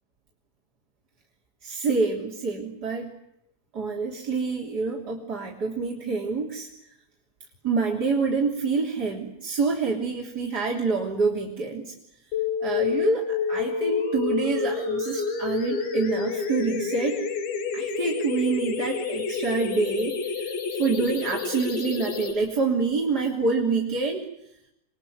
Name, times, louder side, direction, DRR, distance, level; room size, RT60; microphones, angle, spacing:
voice 1, 1.6-3.1 3.7-6.7 7.6-11.9 12.6-17.2 17.7-24.3, right 4 dB, 25° right, -1 dB, 2.8 m, -27 dB
sound 1, 12.3-22.3, left 5 dB, 70° left, 6.6 m, -29 dB
27.5 x 22.0 x 9.5 m, 0.81 s
omnidirectional pair, 5.6 m